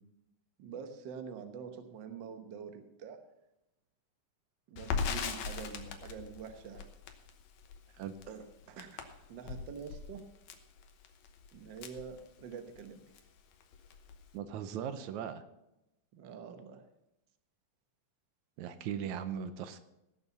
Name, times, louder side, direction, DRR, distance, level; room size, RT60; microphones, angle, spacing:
voice 1, 0.6-3.2 4.7-6.9 8.3-10.2 11.5-13.0 16.1-16.8, right 6 dB, 90° right, 7 dB, 1.0 m, -46 dB
Crackle, 4.8-12.8 13.2-13.3 13.6-14.3, left 6 dB, 65° left, 2.1 m, -40 dB
voice 2, 14.3-15.4 18.6-19.8, right 8 dB, 75° right, 11 dB, 1.9 m, -38 dB
17.5 x 6.9 x 5.9 m, 0.91 s
omnidirectional pair, 3.8 m